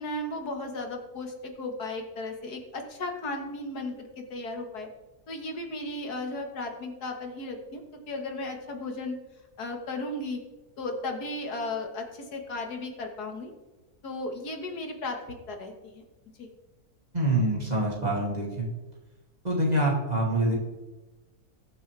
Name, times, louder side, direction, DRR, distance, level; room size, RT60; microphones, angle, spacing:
voice 1, 0.0-4.9 5.3-7.8 8.1-9.2 9.6-10.4 10.8-13.5 14.0-15.2 15.5-16.0 16.4-16.5, left 2 dB, 75° left, 3 dB, 2.1 m, -35 dB
voice 2, 17.1-18.7 19.4-20.6, right 1 dB, 25° right, -4 dB, 2.5 m, -25 dB
21.0 x 7.0 x 3.4 m, 1.1 s
omnidirectional pair, 1.7 m